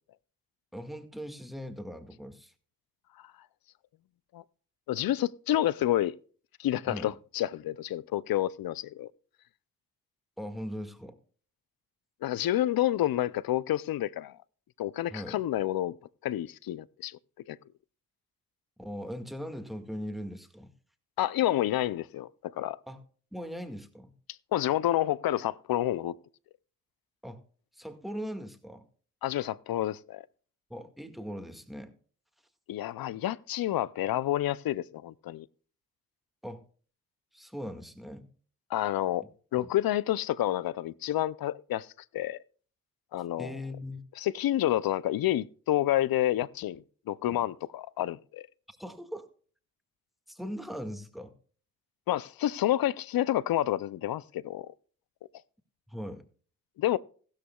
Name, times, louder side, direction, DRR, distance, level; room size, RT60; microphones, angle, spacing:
voice 1, 0.7-2.5 6.9-7.1 10.4-11.2 15.1-15.4 18.8-20.7 22.9-23.0 23.3-24.1 27.2-27.4 27.7-28.9 30.7-31.9 36.4-36.6 37.3-38.3 39.6-39.7 43.4-44.0 47.3-47.4 48.7-49.3 50.3-51.3 55.9-56.2, equal, ahead, 1.9 m, -40 dB
voice 2, 4.9-6.1 6.6-9.1 12.2-14.4 14.8-15.9 16.2-17.2 17.5-17.6 21.2-22.8 24.5-26.2 29.2-30.2 32.7-35.5 38.7-39.2 39.5-41.9 42.1-42.4 43.1-43.6 44.2-48.5 52.1-54.7 56.8-57.0, left 13 dB, 70° left, 0.6 m, -29 dB
15.5 x 13.0 x 2.3 m
cardioid pair, 55°, 37 cm